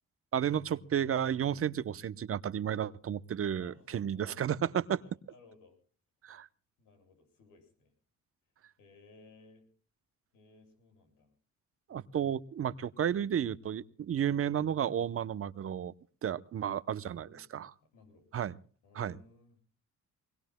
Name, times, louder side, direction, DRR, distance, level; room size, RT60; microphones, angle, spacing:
voice 1, 0.3-5.0 6.2-6.5 11.9-15.9 16.2-17.7 18.3-18.5 18.9-19.2, right 9 dB, 45° right, 16 dB, 0.8 m, -32 dB
voice 2, 3.6-4.3 4.6-5.8 6.8-7.9 8.8-9.6 10.3-11.3 17.1-17.4 17.9-18.3 18.8-19.6, left 3 dB, 90° left, 4 dB, 7.8 m, -60 dB
24.5 x 21.5 x 2.2 m, 0.42 s
cardioid pair, 90°, 30 cm